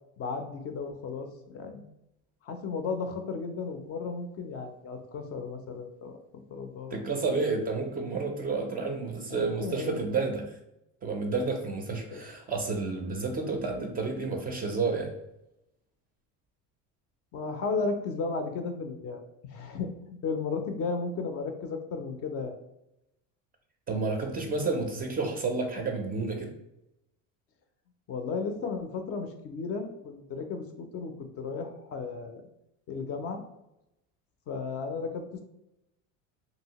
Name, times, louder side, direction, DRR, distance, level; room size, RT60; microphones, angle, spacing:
voice 1, 0.2-1.9 2.4-7.6 9.3-10.4 11.9-12.2 17.3-22.6 28.1-32.4 32.9-33.4 34.5-35.4, left 4 dB, 40° left, 5 dB, 0.4 m, -35 dB
voice 2, 6.9-10.5 11.0-15.1 23.9-26.5, right 4 dB, 25° right, 3 dB, 0.4 m, -30 dB
2.7 x 2.7 x 2.8 m, 0.85 s
supercardioid pair, 120°, 38 cm